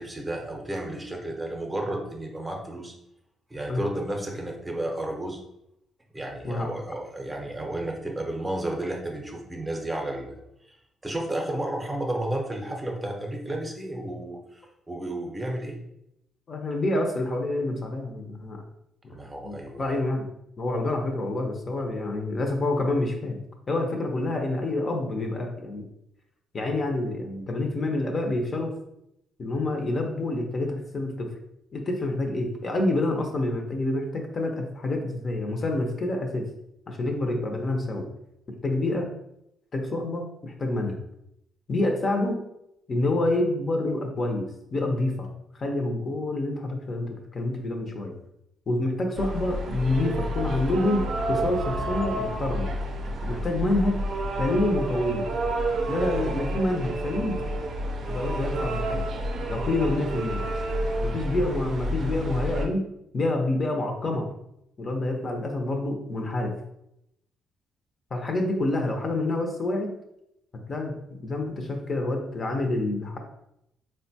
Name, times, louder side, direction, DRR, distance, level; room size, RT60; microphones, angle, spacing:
voice 1, 0.0-2.9 3.5-5.4 6.1-10.4 10.7-10.8 11.0-14.6 14.9-15.8 19.1-19.9, right 1 dB, 15° right, 1 dB, 0.6 m, -32 dB
voice 2, 16.5-18.6 19.4-20.3 20.6-23.4 23.7-25.8 26.5-28.7 29.4-31.3 31.7-36.4 36.9-38.1 38.6-39.1 39.7-41.0 41.7-42.4 42.9-45.3 45.5-48.1 48.7-52.7 53.2-54.0 54.4-55.3 55.9-57.4 58.1-59.0 59.5-60.5 61.0-62.8 63.1-64.3 64.8-66.5 68.1-69.9 70.7-73.2, left 2 dB, 40° left, 2 dB, 0.5 m, -27 dB
sound 1, 49.1-62.7, right 1 dB, 65° right, 0.5 m, -29 dB
3.7 x 2.2 x 2.7 m, 0.81 s
cardioid pair, 90°, 0 cm